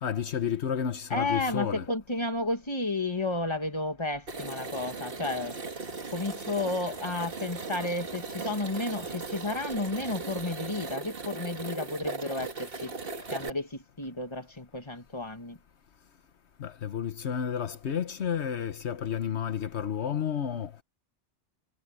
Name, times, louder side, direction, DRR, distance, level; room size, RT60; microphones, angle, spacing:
voice 1, 0.0-1.9 16.6-20.8, left 8 dB, 80° left, 1.3 m, -31 dB
voice 2, 1.1-5.6 6.1-13.0 13.3-15.6, left 2 dB, 25° left, 2.4 m, -32 dB
sound 1, 4.3-13.5, right 4 dB, 60° right, 2.0 m, -38 dB
omnidirectional pair, 1.1 m